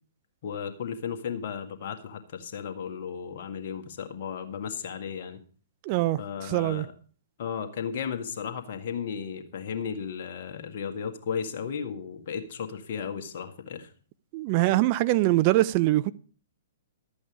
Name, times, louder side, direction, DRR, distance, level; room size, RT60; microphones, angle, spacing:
voice 1, 0.4-5.4 6.2-6.9 7.4-13.9, left 7 dB, 50° left, 1.8 m, -35 dB
voice 2, 5.9-6.8 14.3-16.1, right 17 dB, 40° right, 0.5 m, -23 dB
13.0 x 8.5 x 4.9 m
figure-of-eight pair, 120°, 0 cm